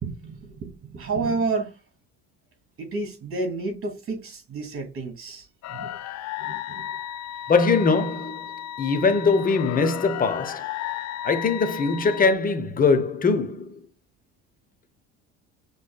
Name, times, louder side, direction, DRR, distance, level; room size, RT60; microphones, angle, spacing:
voice 1, 0.0-1.7 2.8-6.0 6.4-7.0, right 3 dB, 45° right, 2.5 m, -31 dB
sound 1, 5.6-12.3, left 12 dB, 55° left, 0.6 m, -34 dB
voice 2, 7.5-10.8 11.2-13.8, left 4 dB, 25° left, 0.9 m, -22 dB
6.3 x 3.4 x 2.3 m
supercardioid pair, 80°, 33 cm